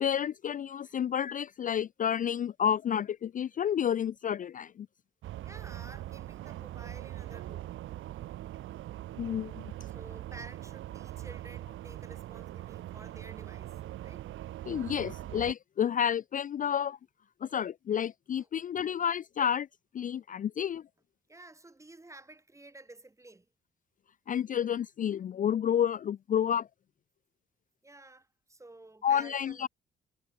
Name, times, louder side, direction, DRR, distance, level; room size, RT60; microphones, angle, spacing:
voice 1, 0.0-4.9 9.2-9.7 14.7-17.0 17.4-19.7 19.9-20.8 24.3-26.7 29.0-29.7, left 9 dB, 40° left, 0.5 m, -30 dB
sound 1, 5.2-15.5, right 14 dB, 80° right, 1.8 m, -42 dB
voice 2, 5.4-7.7 9.9-13.8 14.0-14.3 18.4-18.5 21.3-23.5 27.8-29.7, right 2 dB, 15° right, 3.8 m, -52 dB
cardioid pair, 90°, 20 cm